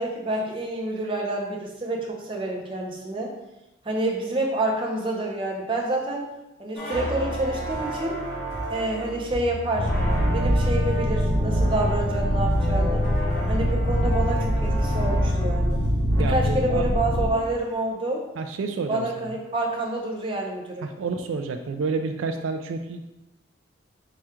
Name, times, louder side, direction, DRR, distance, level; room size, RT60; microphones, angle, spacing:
voice 1, 0.0-3.3 3.8-6.2 6.6-8.2 8.7-9.9 10.3-13.1 13.5-15.8 16.3-18.2 18.9-20.8, right 2 dB, 25° right, -1 dB, 0.6 m, -28 dB
sound 1, 6.8-16.2, right 1 dB, 50° left, 1.4 m, -31 dB
sound 2, 9.8-17.3, equal, 35° left, 0.4 m, -23 dB
voice 2, 16.2-16.9 18.4-19.4 20.8-23.0, right 4 dB, 80° right, 6 dB, 0.3 m, -29 dB
4.8 x 2.3 x 4.3 m, 0.97 s
head